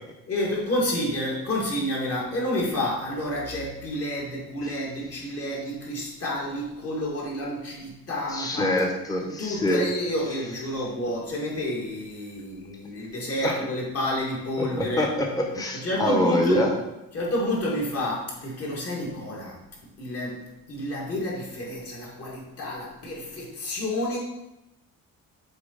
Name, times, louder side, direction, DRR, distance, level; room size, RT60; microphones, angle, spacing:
voice 1, 0.3-8.7 9.2-15.1 15.7-16.7 17.1-19.6 20.0-20.4 20.7-24.2, left 1 dB, 45° left, -3 dB, 2.3 m, -29 dB
voice 2, 8.3-9.8 13.4-13.6 14.6-16.7, left 1 dB, 10° left, 1 dB, 1.0 m, -25 dB
6.9 x 4.2 x 4.1 m, 0.91 s
cardioid pair, 130°, 34 cm